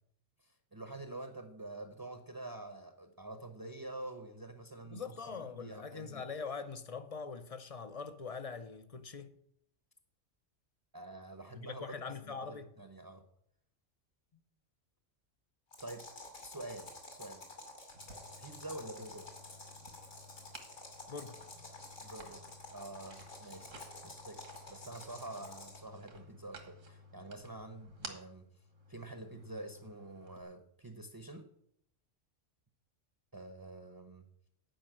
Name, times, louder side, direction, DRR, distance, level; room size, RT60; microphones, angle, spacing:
voice 1, 0.4-6.2 10.9-13.2 15.8-16.1 16.4-17.4 18.4-19.3 22.0-23.8 24.0-24.4 24.7-31.5 33.3-34.3, right 2 dB, 20° right, 0.7 m, -47 dB
voice 2, 4.8-9.3 11.5-12.7 21.1-21.4, left 5 dB, 40° left, 0.6 m, -43 dB
sound 1, 15.7-25.9, left 2 dB, 75° left, 2.9 m, -51 dB
sound 2, 17.9-30.4, right 1 dB, 75° right, 1.8 m, -54 dB
10.5 x 5.3 x 7.7 m
omnidirectional pair, 1.3 m